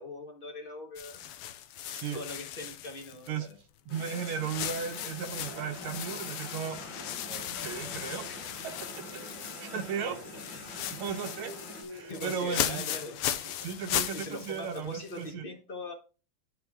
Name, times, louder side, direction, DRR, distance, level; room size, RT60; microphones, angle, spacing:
voice 1, 0.0-1.3 1.8-3.6 8.3-8.5 12.1-13.7 14.1-15.9, left 1 dB, 30° left, 3 dB, 1.2 m, -42 dB
sound 1, 1.0-3.5 3.9-9.9 10.2-15.3, left 11 dB, 85° left, 1.6 m, -37 dB
voice 2, 1.9-2.2 3.3-3.5 3.9-8.5 9.4-10.2 10.7-11.5 11.9-12.9 13.6-15.4, right 7 dB, 80° right, 3 dB, 1.6 m, -36 dB
sound 2, 3.9-11.8, left 2 dB, 60° left, 2.3 m, -46 dB
sound 3, 5.4-13.9, equal, 15° left, 2.8 m, -50 dB
11.5 x 4.3 x 3.5 m, 0.33 s
omnidirectional pair, 2.4 m